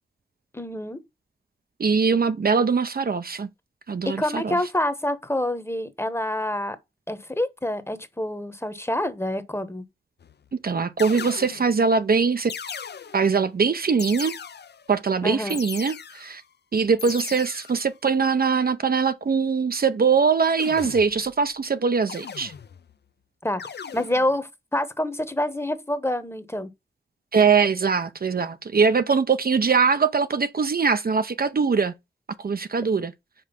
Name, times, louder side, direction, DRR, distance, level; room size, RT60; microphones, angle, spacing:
voice 1, 0.5-1.0 4.1-6.8 7.1-9.8 15.2-15.6 23.4-23.6 23.9-26.7, left 1 dB, 15° left, 1.0 m, -27 dB
voice 2, 1.8-3.5 3.9-4.6 10.5-12.5 13.1-14.4 14.9-16.4 16.7-22.5 27.3-31.9 32.4-33.1, right 5 dB, 55° right, 0.6 m, -22 dB
sound 1, 10.2-10.5 11.0-11.8 12.5-13.4 14.0-14.9 15.5-16.4 17.0-17.9 20.6-21.3 22.1-22.9 23.6-24.4, left 6 dB, 65° left, 0.5 m, -38 dB
5.3 x 4.8 x 5.7 m
wide cardioid pair, 90°, 19 cm